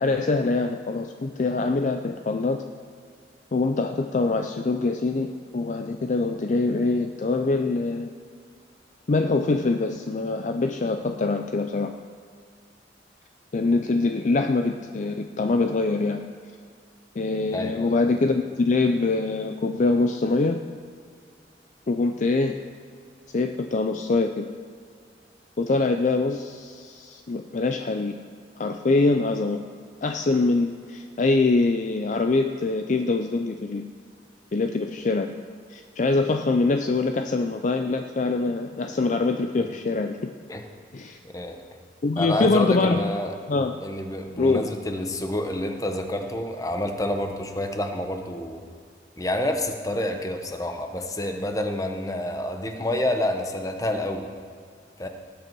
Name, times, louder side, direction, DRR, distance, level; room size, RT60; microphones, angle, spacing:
voice 1, 0.0-2.6 3.5-8.1 9.1-11.9 13.5-16.3 17.2-20.6 21.9-22.6 23.3-24.5 25.6-28.2 28.6-29.6 30.0-33.9 34.5-35.4 35.7-40.2 40.9-41.2 42.0-43.0 43.5-43.7 44.4-44.7, left 3 dB, 40° left, 6 dB, 0.4 m, -24 dB
voice 2, 17.5-18.0 39.6-39.7 40.5-40.6 41.2-41.6 42.2-43.4 43.8-48.6 49.2-54.3 55.0-55.1, left 1 dB, 20° left, 5 dB, 0.9 m, -28 dB
18.5 x 8.0 x 4.6 m, 2.1 s
head